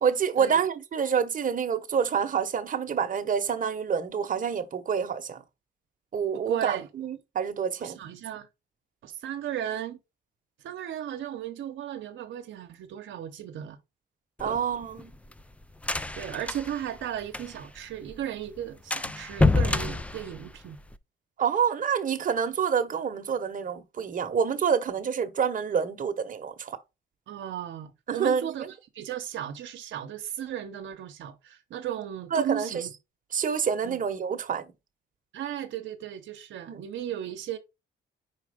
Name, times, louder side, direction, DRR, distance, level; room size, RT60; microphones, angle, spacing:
voice 1, 0.0-5.4 6.1-8.0 14.4-15.1 21.4-26.8 28.1-28.5 32.3-32.7 33.3-34.7 36.7-36.8, right 7 dB, 40° right, 1.0 m, -27 dB
voice 2, 6.3-6.9 7.8-8.5 9.0-10.0 10.6-13.8 14.4-14.6 16.1-20.8 27.3-32.9 33.8-34.0 35.3-37.6, right 10 dB, 75° right, 0.8 m, -35 dB
sound 1, 14.4-17.8 18.1-18.2 18.5-18.6 18.9-21.0, left 2 dB, 5° left, 0.4 m, -27 dB
4.8 x 4.3 x 4.9 m
cardioid pair, 90°, 20 cm